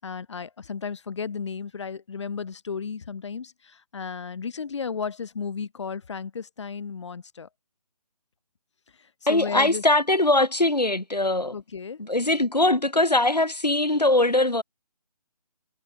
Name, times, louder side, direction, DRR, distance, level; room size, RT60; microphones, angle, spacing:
voice 1, 0.0-7.5 9.3-9.8 11.5-12.0, left 6 dB, 45° left, 5.2 m, -34 dB
voice 2, 9.3-11.5 12.0-14.6, left 2 dB, 90° left, 3.3 m, -21 dB
figure-of-eight pair, 155°, 20 cm